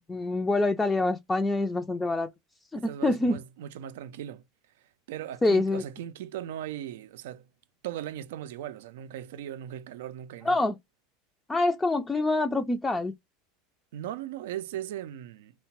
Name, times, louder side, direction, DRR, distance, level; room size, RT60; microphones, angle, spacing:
voice 1, 0.0-2.3 2.7-3.4 5.4-5.8 10.4-10.8 11.5-13.1, left 2 dB, 15° left, 0.3 m, -26 dB
voice 2, 2.7-4.4 5.1-7.5 7.8-10.7 13.9-15.5, right 11 dB, 75° right, 0.3 m, -38 dB
2.8 x 2.1 x 2.9 m
hypercardioid pair, 95°, 0 cm